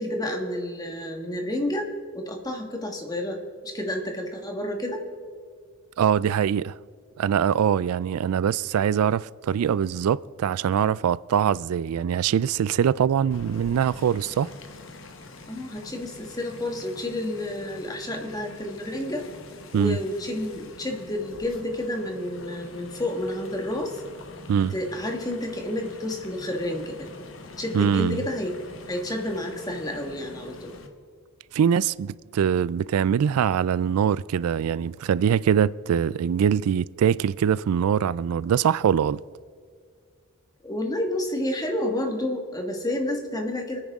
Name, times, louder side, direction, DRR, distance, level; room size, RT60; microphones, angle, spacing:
voice 1, 0.0-1.9 2.1-5.0 15.5-19.3 19.7-24.0 24.7-27.1 27.6-28.6 28.9-30.7 40.6-43.8, left 1 dB, 15° left, 1.5 m, -30 dB
voice 2, 6.0-6.7 7.2-14.5 19.7-20.0 24.5-24.7 27.7-28.2 31.5-39.2, right 8 dB, 85° right, 0.3 m, -23 dB
sound 1, 13.3-30.9, left 2 dB, 65° left, 1.3 m, -45 dB
27.0 x 10.0 x 3.6 m
head